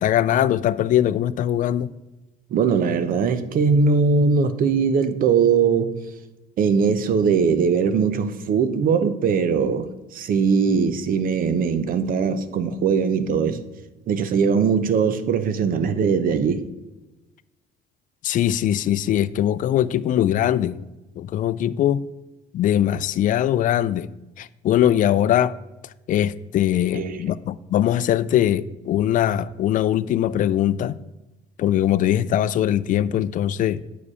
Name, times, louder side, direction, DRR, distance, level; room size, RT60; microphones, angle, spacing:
voice 1, 0.0-1.9 18.2-20.8 21.2-22.0 22.5-24.1 24.4-25.5 26.1-31.0 31.6-33.8, left 11 dB, 50° left, 0.4 m, -21 dB
voice 2, 2.5-6.0 6.6-13.6 14.1-16.6 26.9-27.2, right 5 dB, 55° right, 0.7 m, -20 dB
8.1 x 4.9 x 4.8 m
cardioid pair, 110°, 17 cm